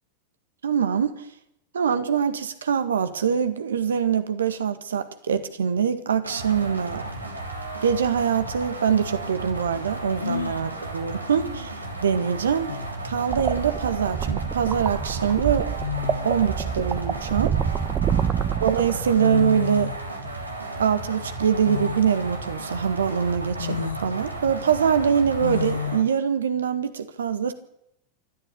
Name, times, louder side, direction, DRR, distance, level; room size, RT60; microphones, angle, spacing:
voice 1, 0.6-1.2 1.7-7.0 7.8-11.7 12.0-12.7 13.0-15.7 16.2-17.6 18.6-19.9 20.8-27.5, right 7 dB, 70° right, 1.7 m, -24 dB
sound 1, 6.2-26.0, right 2 dB, 90° right, 3.1 m, -34 dB
sound 2, 10.2-10.7 12.2-12.3 12.7-13.2 14.5-14.7 15.8-16.6 17.2-18.2 18.9-19.0 19.2-20.0 21.6-22.2 22.8-22.9 23.6-24.1 25.4-26.0, left 7 dB, 75° left, 1.4 m, -31 dB
sound 3, 13.3-19.4, right 8 dB, 30° right, 1.1 m, -27 dB
26.5 x 12.5 x 8.6 m
figure-of-eight pair, 85°, 0 cm